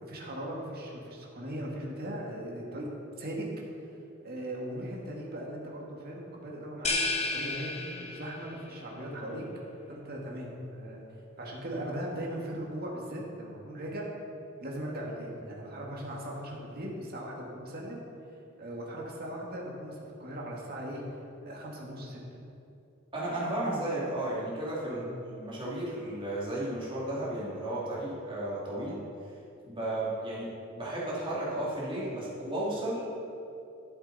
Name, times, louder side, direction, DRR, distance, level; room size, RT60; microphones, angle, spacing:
voice 1, 0.0-2.9 3.2-3.5 4.2-7.0 7.3-9.4 9.9-11.0 11.4-14.1 14.6-18.0 18.6-21.2 21.4-22.2 24.8-25.0, right 1 dB, 50° right, -2 dB, 1.9 m, -38 dB
sound 1, 6.8-8.6, left 3 dB, 30° left, 0.9 m, -32 dB
voice 2, 23.1-29.0 29.6-33.1, right 1 dB, 25° right, -7 dB, 2.6 m, -34 dB
12.0 x 7.9 x 4.1 m, 2.7 s
head